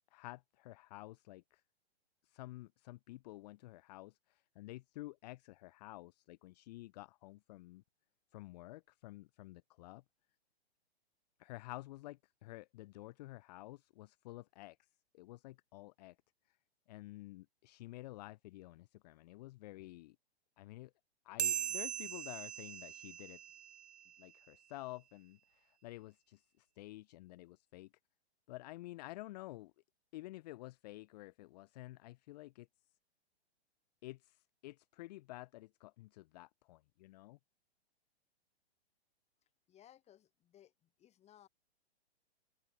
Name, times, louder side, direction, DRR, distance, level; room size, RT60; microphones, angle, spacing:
voice 1, 0.1-1.6 2.2-7.8 8.3-10.0 11.4-16.2 16.4-16.6 16.9-20.2 20.6-20.9 21.2-23.4 24.2-27.9 28.5-29.7 30.1-32.7 34.0-37.4, left 19 dB, 40° left, 0.7 m, -51 dB
sound 1, 21.4-24.2, right 10 dB, 80° right, 0.5 m, -40 dB
voice 2, 39.7-41.5, left 11 dB, 20° left, 1.8 m, -63 dB
open air
hypercardioid pair, 120°, 33 cm